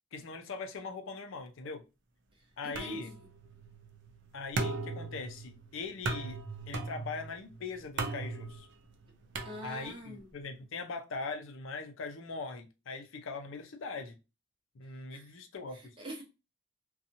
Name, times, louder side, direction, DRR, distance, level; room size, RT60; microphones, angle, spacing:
voice 1, 0.1-1.8 2.6-3.1 4.3-6.4 6.7-8.7 9.6-14.2 14.7-16.0, left 4 dB, 70° left, 0.5 m, -41 dB
voice 2, 2.6-3.3 9.4-10.3 15.1-15.4 16.0-16.2, equal, 25° right, 0.9 m, -44 dB
sound 1, 2.8-10.1, right 3 dB, 60° right, 0.5 m, -39 dB
2.8 x 2.3 x 2.6 m
head